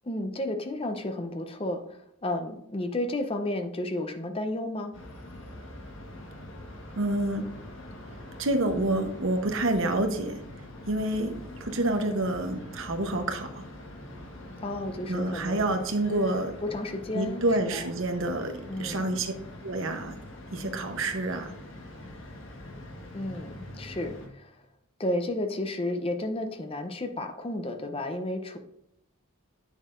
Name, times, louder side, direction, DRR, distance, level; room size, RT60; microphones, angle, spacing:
voice 1, 0.0-5.0 14.6-15.7 16.6-17.4 17.7-17.8 18.7-19.0 23.1-24.6 25.0-28.6, left 1 dB, 25° left, 6 dB, 0.6 m, -32 dB
sound 1, 4.9-24.3, left 1 dB, 55° left, 1.3 m, -44 dB
voice 2, 7.0-7.5 8.4-10.4 10.9-13.6 15.1-16.5 17.1-19.3 19.6-20.2 20.5-21.5, right 2 dB, 60° right, 6 dB, 0.8 m, -28 dB
8.3 x 6.4 x 2.5 m, 0.78 s
head